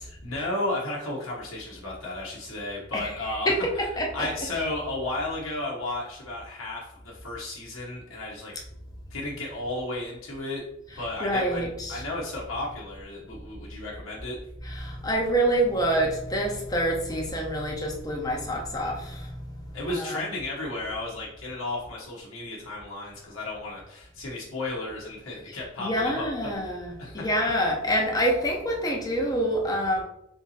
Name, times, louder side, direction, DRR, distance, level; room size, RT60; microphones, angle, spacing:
voice 1, 0.0-3.9 4.1-8.5 9.1-10.6 11.0-14.4 19.7-26.3 27.0-27.3, left 2 dB, 80° left, -5 dB, 0.9 m, -33 dB
voice 2, 4.0-4.3 11.2-12.0 14.6-20.2 25.8-30.0, equal, 20° left, 0 dB, 0.7 m, -27 dB
3.6 x 2.7 x 4.1 m, 0.81 s
head